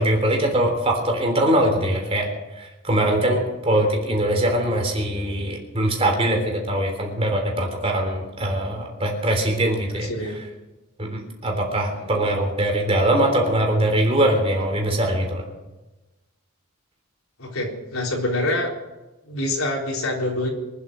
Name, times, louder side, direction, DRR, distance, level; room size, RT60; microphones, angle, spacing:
voice 1, 0.0-2.3 2.6-10.1 11.0-15.4, right 1 dB, 25° right, 2 dB, 3.4 m, -22 dB
voice 2, 10.0-10.4 17.4-18.7 19.3-20.5, left 1 dB, 75° left, -1 dB, 3.8 m, -25 dB
24.0 x 8.4 x 6.2 m, 1.1 s
head